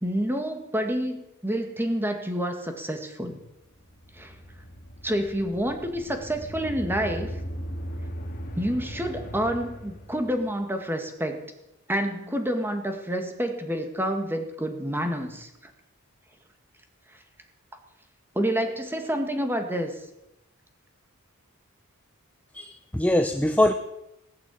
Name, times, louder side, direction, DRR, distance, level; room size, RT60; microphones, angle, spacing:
voice 1, 0.0-3.4 4.1-4.3 5.0-7.3 8.6-11.4 11.9-15.5 18.4-19.9, equal, 10° right, 5 dB, 1.9 m, -28 dB
sound 1, 3.6-10.6, equal, 40° left, 2.7 m, -38 dB
voice 2, 22.5-23.7, left 1 dB, 5° left, 6 dB, 0.7 m, -22 dB
19.0 x 8.8 x 8.4 m, 0.88 s
head